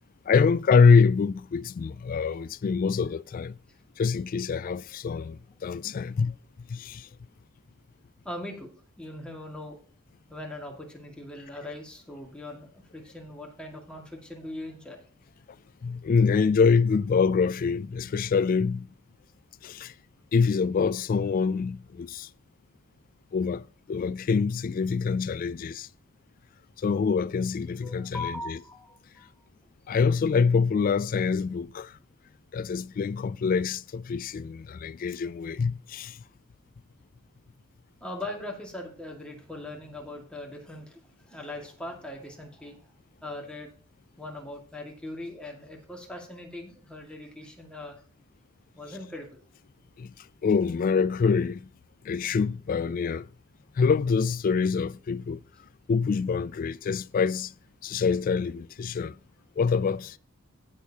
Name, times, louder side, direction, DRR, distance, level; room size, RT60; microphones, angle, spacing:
voice 1, 0.3-3.6 4.0-6.3 6.7-7.1 15.8-18.9 19.6-19.9 20.3-22.3 23.3-25.9 26.8-28.6 29.9-31.9 32.5-36.2 50.0-50.1 50.4-51.7 52.0-53.3 53.8-55.4 55.9-57.5 57.8-59.2 59.6-60.2, left 5 dB, 40° left, 0.3 m, -25 dB
voice 2, 8.2-8.7 9.0-9.8 10.3-15.0 27.8-29.3 38.0-42.8 43.2-43.7 44.2-48.0 48.7-49.4, left 1 dB, 5° left, 2.0 m, -40 dB
16.0 x 6.4 x 2.9 m
head